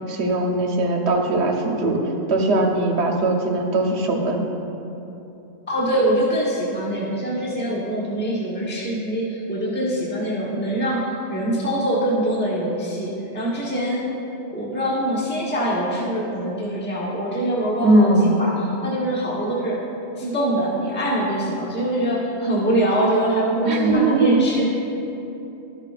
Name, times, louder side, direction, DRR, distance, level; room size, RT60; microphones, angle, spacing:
voice 1, 0.1-2.0 2.3-4.4 17.8-18.4 23.7-24.6, right 2 dB, 65° right, 2 dB, 1.1 m, -20 dB
voice 2, 5.7-14.0 14.5-19.8 20.2-24.6, right 1 dB, 10° left, -6 dB, 1.0 m, -23 dB
12.0 x 6.7 x 2.4 m, 3.0 s
omnidirectional pair, 1.2 m